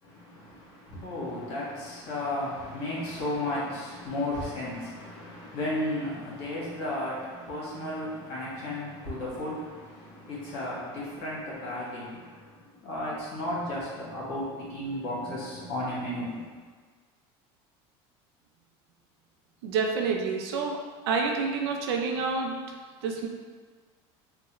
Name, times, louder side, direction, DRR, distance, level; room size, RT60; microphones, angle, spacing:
voice 1, 0.0-16.5, left 1 dB, 65° left, -6 dB, 1.5 m, -34 dB
voice 2, 19.6-22.5 23.0-23.3, right 4 dB, 90° right, 2 dB, 0.5 m, -28 dB
3.8 x 2.1 x 3.0 m, 1.5 s
supercardioid pair, 115°, 13 cm